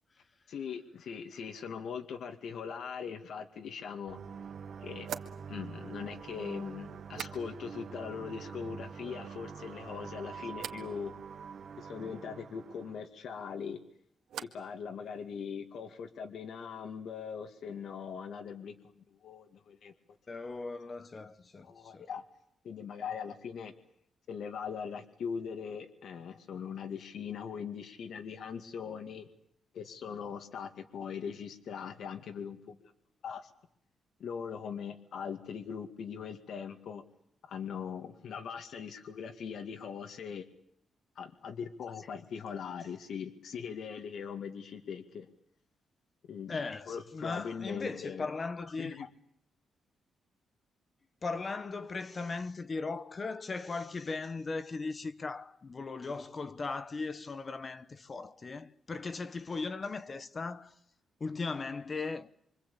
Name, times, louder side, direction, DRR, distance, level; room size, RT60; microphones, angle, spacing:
voice 1, 0.5-4.2 4.8-5.1 5.5-11.1 11.8-13.8 14.4-19.9 21.6-22.2 22.6-23.7 24.3-29.3 29.7-32.8 33.2-33.5 34.2-37.0 37.4-40.4 41.2-45.3 46.3-46.6 46.9-48.3 48.8-49.1, left 6 dB, 65° left, 2.2 m, -41 dB
sound 1, 3.8-3.9 5.0-7.9 8.1-8.7 9.1-9.7 10.5-10.9 13.3-14.8 15.0-15.6, right 9 dB, 85° right, 1.9 m, -47 dB
sound 2, 4.1-13.1, right 6 dB, 50° right, 1.5 m, -45 dB
voice 2, 20.3-22.0 46.5-49.1 51.2-60.7 61.2-62.3, left 4 dB, 30° left, 1.0 m, -38 dB
26.0 x 26.0 x 8.6 m
wide cardioid pair, 155°, 0 cm